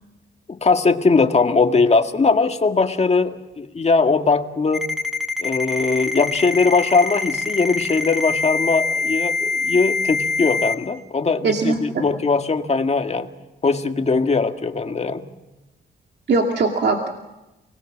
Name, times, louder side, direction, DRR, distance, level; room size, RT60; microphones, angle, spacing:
voice 1, 0.5-4.8 5.4-13.3 13.6-15.2, left 4 dB, 35° left, 6 dB, 1.8 m, -20 dB
Ringtone, 4.7-10.7, left 4 dB, ahead, 4.5 m, -24 dB
voice 2, 11.4-12.0 16.3-17.1, right 3 dB, 60° right, 2 dB, 2.5 m, -20 dB
30.0 x 19.5 x 7.5 m, 1.0 s
cardioid pair, 100°, 20 cm